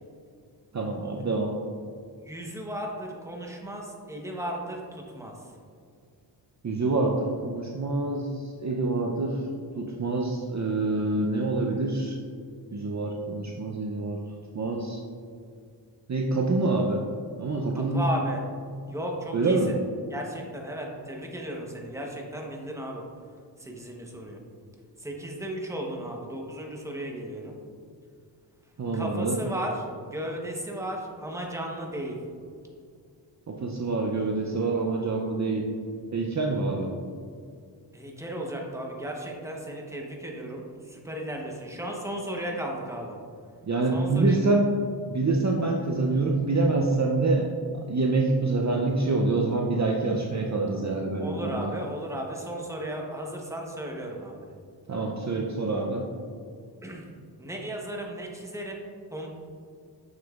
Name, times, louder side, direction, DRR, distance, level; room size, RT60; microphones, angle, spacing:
voice 1, 0.7-1.5 6.6-9.4 9.8-12.2 12.7-14.2 14.5-15.0 16.1-17.0 17.4-18.1 19.3-19.7 28.8-29.4 33.5-35.7 36.1-36.9 43.6-44.7 45.1-47.5 47.7-51.7 54.9-56.0, right 3 dB, 40° right, 0 dB, 0.6 m, -26 dB
voice 2, 2.2-5.3 17.8-18.4 18.9-19.6 20.1-23.0 23.6-24.4 25.0-27.5 28.9-32.2 37.9-43.2 43.9-44.5 51.2-54.4 56.8-57.1 57.4-58.9 59.1-59.3, right 1 dB, 5° right, 0 dB, 0.9 m, -35 dB
6.9 x 6.4 x 2.4 m, 2.2 s
wide cardioid pair, 80°, 43 cm